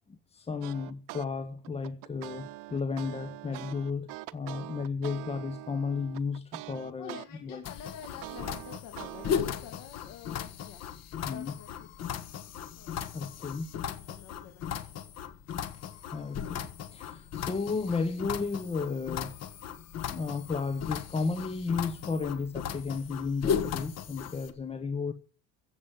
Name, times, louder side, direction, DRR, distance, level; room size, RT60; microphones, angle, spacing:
voice 1, 0.1-7.2 7.4-7.6 11.2-11.5 13.1-13.7 16.1-19.3 20.1-25.1, left 4 dB, 20° left, 0.9 m, -33 dB
sound 1, 0.6-1.3 1.6-7.3 7.6-9.4, right 18 dB, 80° right, 0.8 m, -43 dB
voice 2, 7.0-10.9 11.2-12.2 12.8-15.0, left 9 dB, 70° left, 2.5 m, -49 dB
sound 2, 7.6-24.5, left 8 dB, 50° left, 1.6 m, -36 dB
15.5 x 7.3 x 8.8 m
cardioid pair, 145°, 33 cm